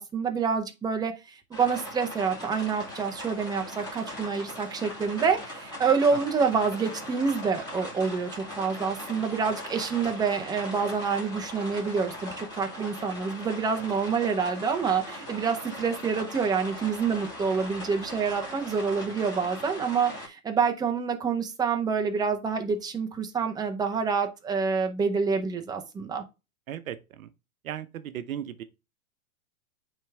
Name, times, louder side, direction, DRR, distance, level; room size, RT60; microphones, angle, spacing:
voice 1, 0.0-26.2, right 5 dB, 10° right, 0.6 m, -27 dB
sound 1, 1.5-20.3, left 1 dB, 10° left, 2.6 m, -40 dB
voice 2, 26.7-27.3 27.6-28.6, right 10 dB, 65° right, 0.8 m, -36 dB
8.8 x 3.5 x 3.3 m
hypercardioid pair, 125°, 44 cm